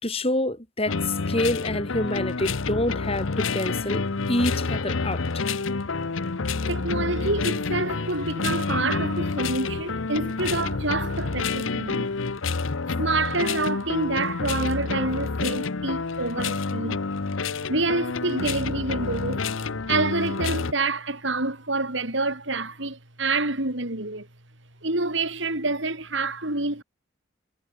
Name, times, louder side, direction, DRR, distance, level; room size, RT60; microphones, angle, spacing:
voice 1, 0.0-5.2, left 1 dB, 30° left, 4.2 m, -27 dB
sound 1, 0.9-20.7, left 4 dB, 75° left, 0.9 m, -28 dB
voice 2, 6.7-12.1 13.0-17.0 17.7-19.4 19.9-24.3 24.8-26.8, right 2 dB, 65° right, 4.1 m, -27 dB
head